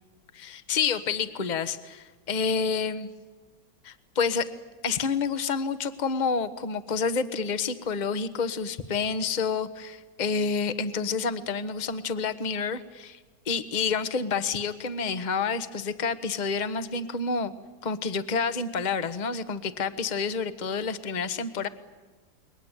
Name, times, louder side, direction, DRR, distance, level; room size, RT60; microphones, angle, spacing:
voice 1, 0.3-3.1 3.8-4.5 4.8-13.2 13.4-17.5 17.8-21.7, left 5 dB, 30° left, 12 dB, 1.1 m, -29 dB
29.5 x 22.0 x 9.0 m, 1.2 s
omnidirectional pair, 2.0 m